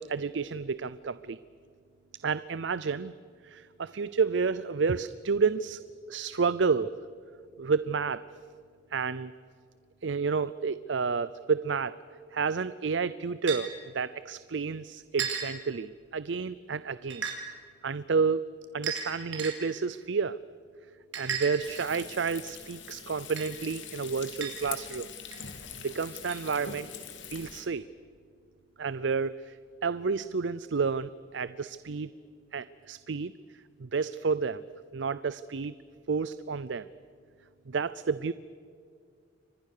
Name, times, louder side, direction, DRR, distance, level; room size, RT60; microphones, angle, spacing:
voice 1, 0.0-1.4 2.2-3.1 3.4-5.8 6.1-6.9 7.6-8.2 8.9-9.3 10.0-12.0 12.3-17.3 17.8-18.5 18.7-20.4 21.2-25.1 25.8-26.9 27.3-27.8 28.8-29.6 29.8-32.1 32.5-33.3 33.8-34.6 34.9-35.7 36.1-36.9 37.7-38.3, right 5 dB, 75° right, 16 dB, 0.6 m, -30 dB
sound 1, 13.5-13.6 15.2-15.5 17.1-17.4 18.8-19.5 21.1-22.0 23.4-23.5 24.4-24.5 25.3-25.4 26.3-26.4, right 7 dB, 90° right, 4.9 m, -33 dB
Frying (food), 21.6-27.7, left 7 dB, 90° left, 3.1 m, -43 dB
30.0 x 25.0 x 6.7 m, 2.3 s
head